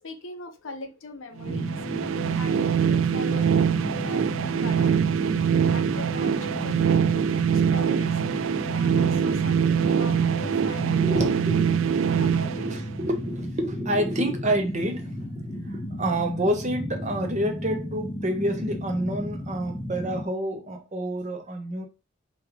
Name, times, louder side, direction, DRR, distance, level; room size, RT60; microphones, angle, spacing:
voice 1, 0.0-5.0 5.4-8.2 8.7-11.3 12.0-12.8, left 3 dB, 85° left, 0.8 m, -42 dB
sound 1, 1.4-20.2, equal, 10° left, 0.7 m, -34 dB
sound 2, 1.4-13.3, right 7 dB, 85° right, 0.3 m, -24 dB
voice 2, 10.9-11.8 12.6-15.1 15.4-21.9, right 1 dB, 35° right, 0.8 m, -28 dB
4.8 x 2.5 x 3.4 m
head